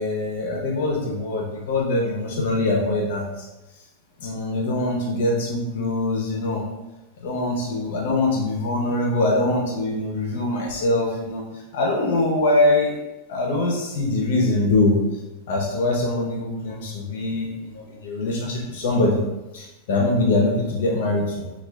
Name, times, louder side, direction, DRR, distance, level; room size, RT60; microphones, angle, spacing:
voice 1, 0.0-3.5 4.2-6.6 7.2-13.0 13.3-15.0 15.5-19.2 19.5-21.5, left 2 dB, 65° left, -1 dB, 0.6 m, -23 dB
4.4 x 2.3 x 2.3 m, 1.0 s
supercardioid pair, 160°, 0 cm